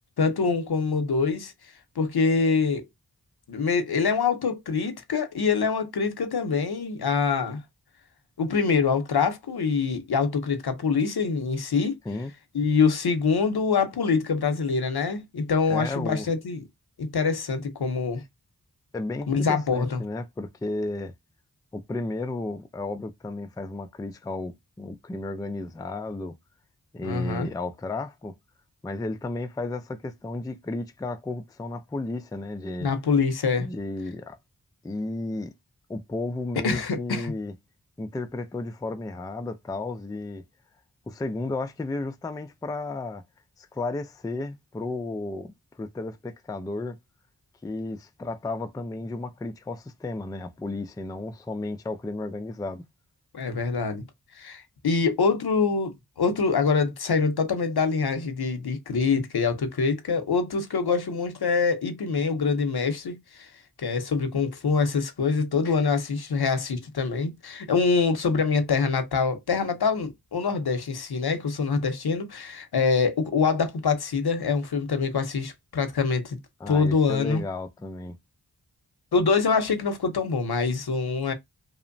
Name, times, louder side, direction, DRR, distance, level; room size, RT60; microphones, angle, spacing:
voice 1, 0.2-1.5 2.0-2.8 3.5-7.6 8.4-12.0 12.5-16.6 17.0-18.2 19.3-20.0 27.0-27.5 32.8-33.7 36.6-37.3 53.3-54.0 54.4-63.5 63.8-76.4 76.7-77.4 79.1-81.3, left 5 dB, 70° left, 0.7 m, -25 dB
voice 2, 15.7-16.3 18.9-21.1 21.7-26.4 26.9-28.3 28.8-32.9 33.6-34.4 34.8-35.5 35.9-37.5 38.0-40.4 41.1-43.2 43.6-47.0 47.6-52.8 76.6-78.2, left 2 dB, 10° left, 0.3 m, -33 dB
2.8 x 2.1 x 2.5 m
wide cardioid pair, 50°, 39 cm